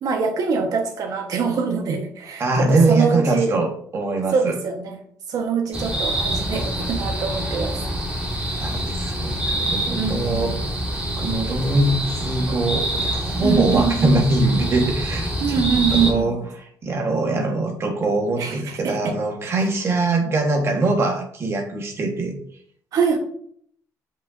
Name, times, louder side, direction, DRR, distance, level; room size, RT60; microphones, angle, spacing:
voice 1, 0.0-3.5 4.3-5.0 5.3-7.7 10.0-10.5 13.4-14.1 15.4-16.4 18.4-19.1 22.9-23.2, right 6 dB, 70° right, 3 dB, 1.3 m, -24 dB
voice 2, 2.4-4.6 8.6-10.6 11.2-15.3 15.9-16.4 16.8-22.3, right 2 dB, 40° right, 3 dB, 1.5 m, -22 dB
sound 1, 5.7-16.1, right 1 dB, 20° right, 2.4 m, -26 dB
8.1 x 5.5 x 2.7 m, 0.62 s
cardioid pair, 125°, 6 cm